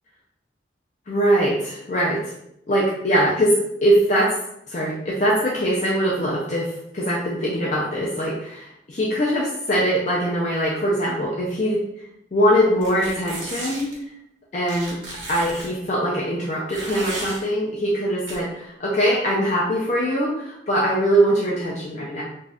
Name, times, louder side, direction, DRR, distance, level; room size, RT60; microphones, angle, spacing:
voice 1, 1.1-2.3 2.7-3.5 3.8-4.3 4.7-11.8 12.3-13.9 14.5-15.0 15.3-22.2, equal, 40° left, -5 dB, 0.5 m, -22 dB
sound 1, 12.8-14.0 14.7-15.7 16.7-17.4 18.3-18.4, right 1 dB, 85° right, 1.0 m, -34 dB
2.6 x 2.3 x 3.3 m, 0.77 s
head